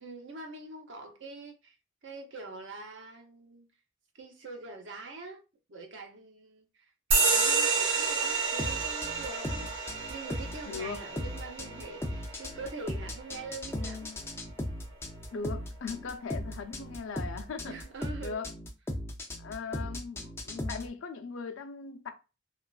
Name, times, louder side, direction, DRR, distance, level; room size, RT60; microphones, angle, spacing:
voice 1, 0.0-1.7 2.0-3.7 4.1-5.4 5.7-9.7 10.1-14.1 17.6-18.4 19.7-20.1, right 3 dB, 65° right, 0.7 m, -44 dB
sound 1, 7.1-14.2, right 4 dB, 90° right, 0.9 m, -30 dB
sound 2, 8.6-20.9, left 1 dB, 10° left, 0.3 m, -37 dB
voice 2, 10.7-11.1 15.3-17.8 18.2-18.5 19.4-22.1, left 5 dB, 80° left, 0.5 m, -39 dB
3.0 x 2.3 x 2.3 m
head